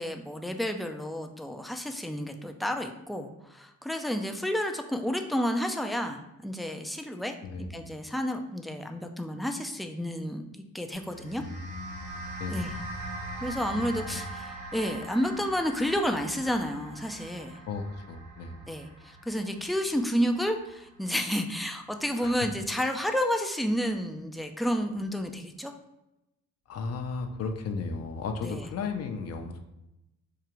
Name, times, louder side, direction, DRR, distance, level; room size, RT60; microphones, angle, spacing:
voice 1, 0.0-11.4 12.5-12.7 13.4-17.6 18.7-25.7 28.4-28.7, equal, ahead, 5 dB, 0.3 m, -31 dB
sound 1, 10.9-21.5, right 2 dB, 85° right, 1.1 m, -42 dB
voice 2, 11.4-12.8 13.7-14.2 17.7-18.7 22.2-22.4 26.7-29.6, left 4 dB, 55° left, 5 dB, 0.6 m, -35 dB
4.7 x 2.4 x 3.0 m, 0.91 s
cardioid pair, 90°, 30 cm